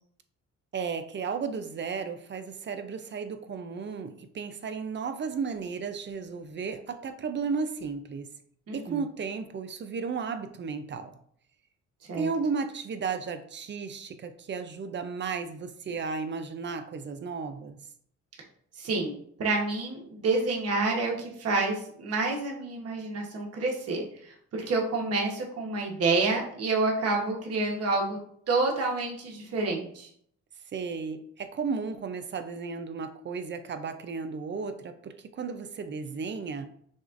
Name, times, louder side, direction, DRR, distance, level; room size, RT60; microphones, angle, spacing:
voice 1, 0.7-8.3 8.7-11.2 12.1-17.8 30.7-36.7, right 5 dB, 40° right, 8 dB, 0.5 m, -34 dB
voice 2, 8.7-9.0 12.1-12.3 18.8-28.2 28.5-30.1, right 3 dB, 55° right, -1 dB, 1.2 m, -28 dB
6.2 x 2.4 x 2.5 m, 0.64 s
cardioid pair, 90°, 30 cm